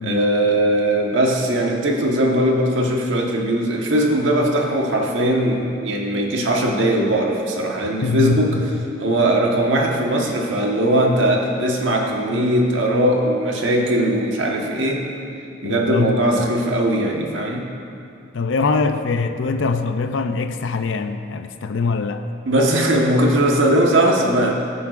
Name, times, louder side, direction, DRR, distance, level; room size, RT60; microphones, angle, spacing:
voice 1, 0.0-8.5 9.0-15.0 15.6-17.6 22.5-24.5, right 1 dB, 85° right, 0 dB, 1.3 m, -19 dB
voice 2, 8.0-8.7 15.6-16.4 18.3-22.2, left 4 dB, 80° left, 8 dB, 0.5 m, -23 dB
19.5 x 7.0 x 2.5 m, 2.5 s
head